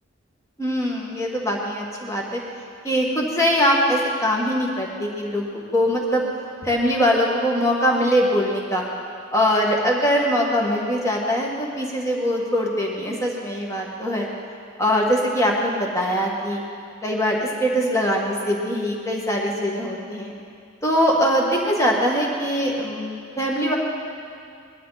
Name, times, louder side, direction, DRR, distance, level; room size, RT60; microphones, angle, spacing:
voice 1, 0.6-2.4 2.8-6.3 6.6-8.9 9.3-14.3 14.8-16.6 17.0-20.3 20.8-23.7, equal, 15° left, -2 dB, 1.8 m, -22 dB
19.5 x 12.0 x 4.2 m, 2.3 s
head